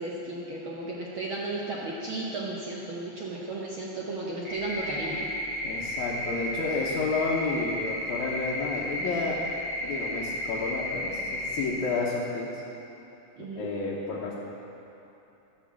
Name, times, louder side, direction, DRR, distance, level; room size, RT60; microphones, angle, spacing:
voice 1, 0.0-5.3 13.4-13.7, right 2 dB, 60° right, -4 dB, 1.4 m, -34 dB
sound 1, 4.5-11.7, left 1 dB, 85° right, 4.2 m, -33 dB
voice 2, 5.6-9.4 9.8-12.6 13.4-14.4, left 3 dB, 80° left, -6 dB, 2.4 m, -31 dB
12.5 x 6.7 x 7.3 m, 2.9 s
omnidirectional pair, 3.4 m